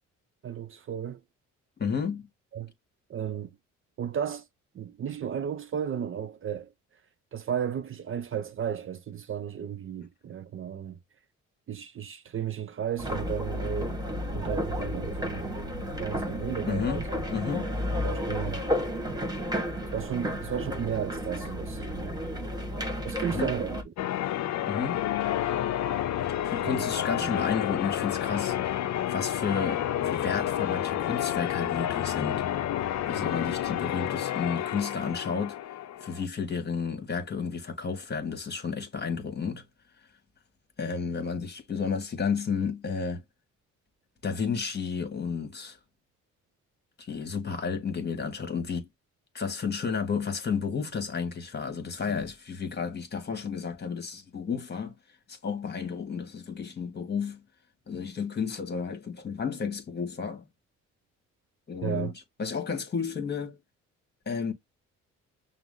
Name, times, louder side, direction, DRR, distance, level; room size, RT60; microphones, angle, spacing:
voice 1, 0.4-1.2 2.5-2.7 3.1-3.5 4.0-4.5 4.7-6.7 7.3-11.0 11.7-14.0 14.3-15.5 16.0-17.1 18.0-18.6 19.9-22.1 23.0-23.8 24.8-24.9 26.6-26.9 27.2-27.4 61.8-62.1, right 8 dB, 45° right, 0.5 m, -34 dB
voice 2, 1.8-2.3 16.7-17.0 17.3-17.7 23.3-23.5 24.6-25.0 26.4-28.8 29.1-32.4 33.1-35.6 36.0-39.6 40.8-43.2 44.2-45.8 47.1-48.9 49.3-54.9 55.3-57.4 57.9-60.4 61.7-62.1 62.4-63.6 64.2-64.5, left 6 dB, 35° left, 1.6 m, -32 dB
sound 1, 13.0-23.8, equal, 15° right, 1.4 m, -32 dB
Church bell, 24.0-36.2, left 12 dB, 65° left, 0.6 m, -30 dB
6.0 x 2.0 x 3.7 m
cardioid pair, 90°, 30 cm